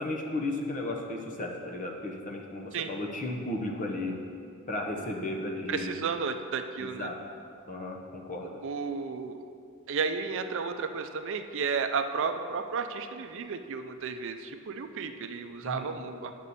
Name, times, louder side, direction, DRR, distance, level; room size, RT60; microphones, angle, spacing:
voice 1, 0.0-4.1 4.7-6.0 6.8-7.2 7.7-8.5 15.6-15.9, left 2 dB, 40° left, 1 dB, 0.9 m, -34 dB
voice 2, 5.7-7.1 8.6-9.4 9.9-16.5, right 5 dB, 65° right, 8 dB, 0.5 m, -33 dB
8.4 x 6.1 x 4.2 m, 2.5 s
head